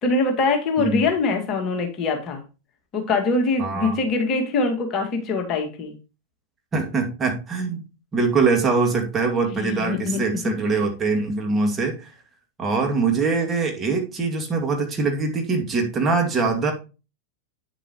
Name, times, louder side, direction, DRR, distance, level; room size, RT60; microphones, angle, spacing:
voice 1, 0.0-2.4 2.9-5.9 9.5-10.5, left 3 dB, 35° left, 3 dB, 2.0 m, -23 dB
voice 2, 3.6-4.0 6.7-7.8 8.1-12.1 12.6-16.7, right 4 dB, 20° right, 2 dB, 2.3 m, -23 dB
9.0 x 7.7 x 3.0 m, 0.30 s
figure-of-eight pair, 90°, 0 cm